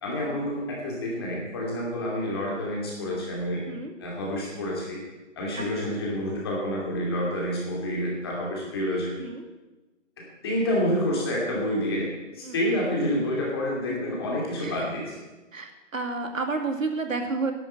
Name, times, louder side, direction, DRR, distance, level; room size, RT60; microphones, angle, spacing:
voice 1, 0.0-3.7 4.0-5.0 5.4-9.2 10.2-15.2, left 1 dB, 20° left, -3 dB, 2.6 m, -28 dB
voice 2, 5.6-5.9 9.2-9.4 12.4-12.6 14.6-14.9 15.5-17.5, right 3 dB, 85° right, 5 dB, 2.4 m, -31 dB
11.0 x 8.9 x 7.4 m, 1.1 s
hypercardioid pair, 175°, 39 cm